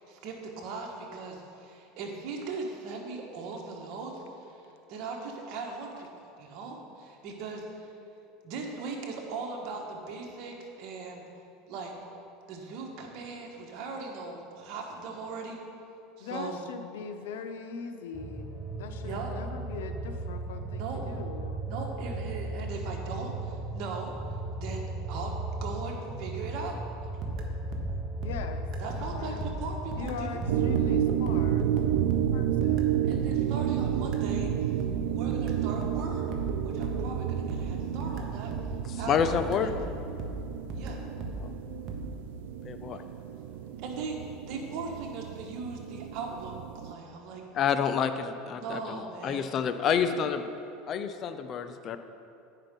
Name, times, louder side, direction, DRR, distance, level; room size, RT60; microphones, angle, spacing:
voice 1, 0.0-7.9 8.4-11.2 11.7-11.9 12.5-15.6 16.2-16.6 19.0-19.3 20.7-21.0 21.7-24.2 24.6-25.3 25.6-27.3 28.8-30.4 33.0-34.7 35.1-36.3 36.6-38.5 38.9-39.7 40.7-41.0 42.9-43.0 43.8-47.4 48.5-50.3, right 4 dB, 60° right, 1 dB, 1.4 m, -39 dB
voice 2, 16.2-21.6 28.2-28.7 28.9-29.4 30.0-31.7 32.3-33.1, left 6 dB, 85° left, 7 dB, 0.7 m, -41 dB
sound 1, 18.1-35.7 36.0-36.1, right 2 dB, 10° right, 0.9 m, -37 dB
sound 2, 27.2-38.9 39.2-42.0, right 1 dB, 45° right, 1.0 m, -38 dB
sound 3, 30.5-46.9, right 10 dB, 80° right, 0.4 m, -31 dB
voice 3, 39.1-39.7 41.4-41.5 42.6-43.0 47.5-49.0 49.2-50.4 50.9-52.0, left 7 dB, 40° left, 10 dB, 0.5 m, -28 dB
9.0 x 5.7 x 5.2 m, 2.7 s
supercardioid pair, 125°, 0 cm